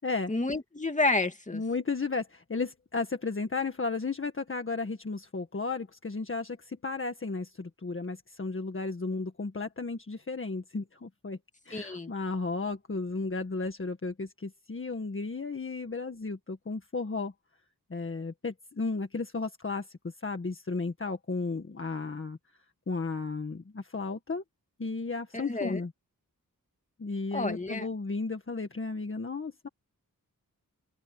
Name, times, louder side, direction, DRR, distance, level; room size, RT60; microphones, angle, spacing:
voice 1, 0.3-1.6 11.7-12.1 25.3-25.8 27.3-27.9, left 2 dB, 20° left, 2.4 m, -30 dB
voice 2, 1.5-11.4 11.6-17.3 17.9-19.9 20.2-22.4 22.9-24.4 24.8-25.9 27.0-29.7, left 3 dB, 35° left, 1.7 m, -34 dB
open air
wide cardioid pair, 115°, 34 cm